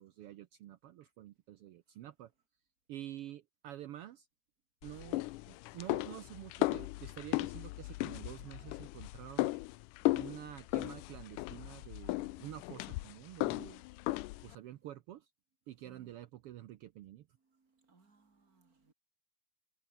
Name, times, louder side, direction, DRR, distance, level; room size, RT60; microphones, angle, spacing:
voice 1, 0.0-2.3 2.9-4.3 4.8-9.5 10.1-13.8 14.4-15.3 15.7-17.3, right 13 dB, 85° right, 1.3 m, -49 dB
sound 1, 4.8-14.6, left 20 dB, 85° left, 2.2 m, -36 dB
voice 2, 17.4-18.9, right 4 dB, 30° right, 3.5 m, -66 dB
omnidirectional pair, 3.6 m